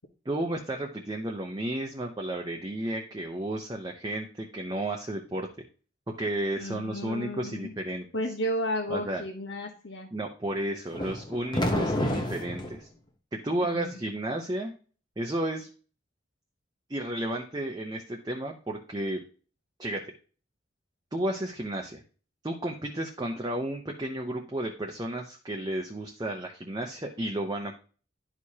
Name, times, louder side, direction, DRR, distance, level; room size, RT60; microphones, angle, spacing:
voice 1, 0.2-5.5 6.2-8.1 8.9-9.2 10.1-12.9 13.3-14.7 15.2-15.7 16.9-19.2 19.8-20.0 21.1-22.0 22.4-27.8, right 1 dB, 20° right, 1 dB, 0.7 m, -32 dB
voice 2, 6.6-7.7 8.1-10.1 13.6-14.0, equal, 70° left, -1 dB, 1.2 m, -33 dB
sound 1, 10.9-12.8, left 1 dB, 20° left, 0.8 m, -29 dB
11.0 x 4.7 x 2.8 m, 0.39 s
head